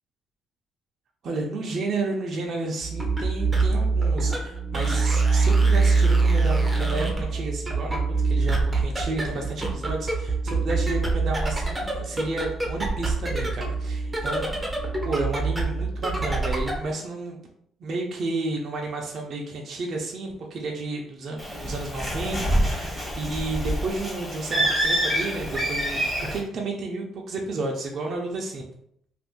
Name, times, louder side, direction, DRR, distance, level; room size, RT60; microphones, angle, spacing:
voice 1, 1.2-14.5 15.0-17.4 17.8-28.6, right 2 dB, 55° right, 0 dB, 0.6 m, -31 dB
sound 1, 2.8-16.9, right 3 dB, 15° right, 0.8 m, -24 dB
Bird, 21.4-26.4, right 1 dB, 10° left, 1.3 m, -26 dB
2.6 x 2.5 x 3.6 m, 0.69 s
cardioid pair, 85°, 0 cm